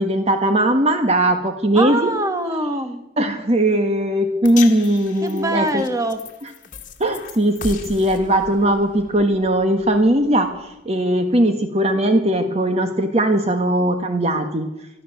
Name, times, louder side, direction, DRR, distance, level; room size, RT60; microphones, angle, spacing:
voice 1, 0.0-2.1 3.2-5.8 7.0-14.7, right 1 dB, 35° right, 7 dB, 1.5 m, -19 dB
voice 2, 1.7-3.0 5.2-6.2, right 1 dB, 20° right, 7 dB, 1.8 m, -23 dB
sound 1, 4.4-10.8, left 5 dB, 50° left, 2.4 m, -37 dB
24.5 x 14.0 x 7.9 m, 0.93 s
head